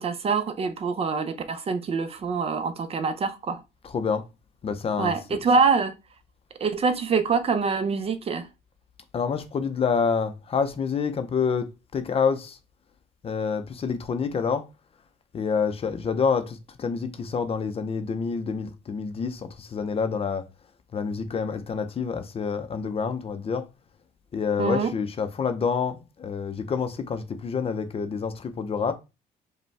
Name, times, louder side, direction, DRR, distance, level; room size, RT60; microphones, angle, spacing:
voice 1, 0.0-3.6 5.0-5.9 6.6-8.5 24.6-24.9, right 5 dB, 35° right, 0.5 m, -25 dB
voice 2, 3.8-4.2 4.6-5.4 9.1-12.6 13.2-14.6 15.3-20.5 20.9-23.7 24.3-28.9, left 5 dB, 35° left, 0.6 m, -27 dB
5.1 x 2.2 x 3.3 m
cardioid pair, 110°, 17 cm